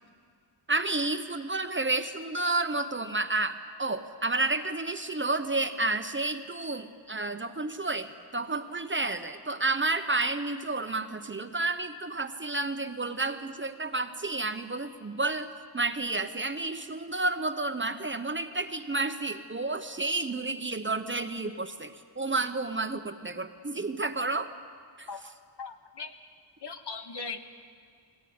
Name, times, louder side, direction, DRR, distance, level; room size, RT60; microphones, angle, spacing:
voice 1, 0.7-24.5 25.0-25.3, right 3 dB, 25° right, 8 dB, 0.9 m, -31 dB
voice 2, 25.6-26.1 26.6-27.4, left 4 dB, 55° left, 6 dB, 1.6 m, -39 dB
22.5 x 18.0 x 9.6 m, 2.1 s
wide cardioid pair, 120°, 48 cm